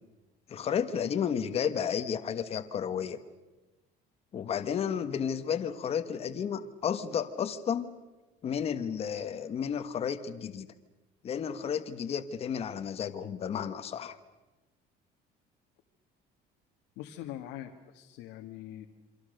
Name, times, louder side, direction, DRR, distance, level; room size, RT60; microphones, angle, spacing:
voice 1, 0.5-3.2 4.3-7.9 8.4-10.7 11.2-14.2, left 8 dB, 35° left, 9 dB, 1.4 m, -32 dB
voice 2, 17.0-18.9, left 12 dB, 90° left, 3 dB, 1.8 m, -43 dB
28.0 x 25.5 x 6.6 m, 1.1 s
cardioid pair, 165°, 18 cm